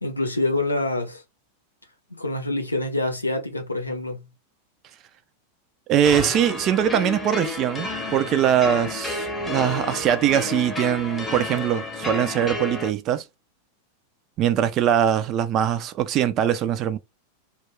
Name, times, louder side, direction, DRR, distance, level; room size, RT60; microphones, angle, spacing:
voice 1, 0.0-1.2 2.1-4.3, left 2 dB, 80° left, 0.6 m, -26 dB
voice 2, 5.9-13.2 14.4-17.0, right 10 dB, 35° right, 0.3 m, -22 dB
sound 1, 6.0-12.9, left 3 dB, 10° left, 0.8 m, -31 dB
2.2 x 2.2 x 3.5 m
figure-of-eight pair, 90°, 0 cm